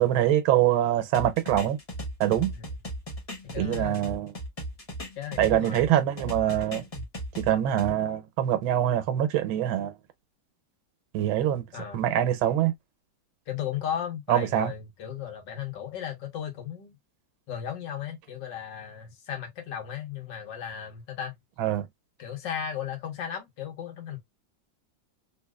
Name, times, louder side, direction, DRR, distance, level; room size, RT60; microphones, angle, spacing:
voice 1, 0.0-1.8 2.2-2.5 3.6-4.3 5.4-6.8 7.4-9.9 11.1-11.7 11.9-12.7 14.3-14.7 21.6-21.9, right 11 dB, 90° right, 1.5 m, -24 dB
sound 1, 1.1-5.9 6.2-7.9, equal, 30° left, 0.7 m, -37 dB
voice 2, 3.4-4.1 5.2-5.9 6.9-7.0 11.7-12.0 13.5-16.9 17.5-21.3 22.2-24.2, left 9 dB, 70° left, 1.6 m, -36 dB
3.6 x 2.8 x 2.2 m
omnidirectional pair, 2.1 m